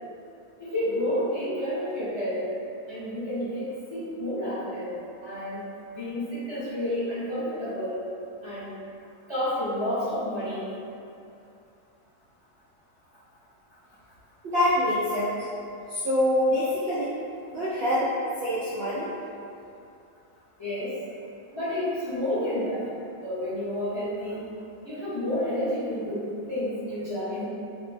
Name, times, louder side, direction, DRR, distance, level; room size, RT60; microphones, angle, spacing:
voice 1, 0.6-2.5 2.9-5.0 5.2-5.6 5.9-8.0 8.4-8.7 9.3-10.7 20.6-20.9 21.5-22.9 23.2-24.4 24.8-27.5, left 1 dB, 30° left, -14 dB, 0.5 m, -30 dB
voice 2, 14.4-15.4 15.9-17.1 17.5-18.1 18.4-19.1, left 1 dB, 90° right, -10 dB, 0.5 m, -25 dB
2.7 x 2.0 x 3.2 m, 2.6 s
omnidirectional pair, 1.6 m